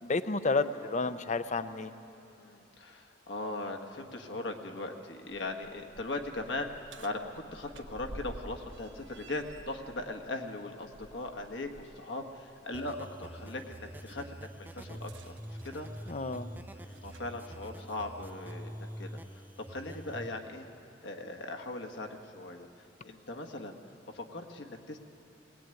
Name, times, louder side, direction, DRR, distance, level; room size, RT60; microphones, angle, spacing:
voice 1, 0.0-1.9 16.1-16.5, left 3 dB, 40° left, 12 dB, 0.6 m, -31 dB
voice 2, 2.4-6.7 7.0-15.3 15.6-16.2 16.8-19.4 19.7-20.7 21.0-22.7 23.0-23.7 24.1-25.0, left 2 dB, 70° left, 3 dB, 1.6 m, -39 dB
sound 1, 5.5-11.9 12.3-12.5 14.9-17.4 18.3-18.4 19.3-19.4, right 1 dB, 75° right, 1.1 m, -51 dB
sound 2, 12.7-20.3, right 1 dB, 10° right, 0.5 m, -45 dB
20.0 x 19.5 x 9.2 m, 2.9 s
head